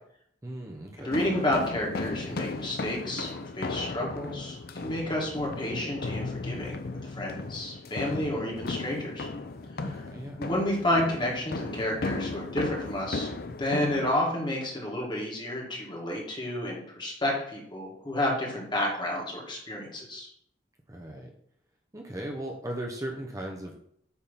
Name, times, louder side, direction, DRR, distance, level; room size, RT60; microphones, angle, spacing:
voice 1, 0.4-1.1 9.8-10.4 20.9-21.3 21.9-23.8, right 1 dB, 15° right, 1 dB, 0.8 m, -37 dB
voice 2, 1.0-9.3 9.7-10.0 10.4-20.3, left 1 dB, 25° left, -2 dB, 2.1 m, -31 dB
sound 1, 1.1-14.1, left 3 dB, 55° left, 0.6 m, -36 dB
8.6 x 3.7 x 5.6 m, 0.68 s
head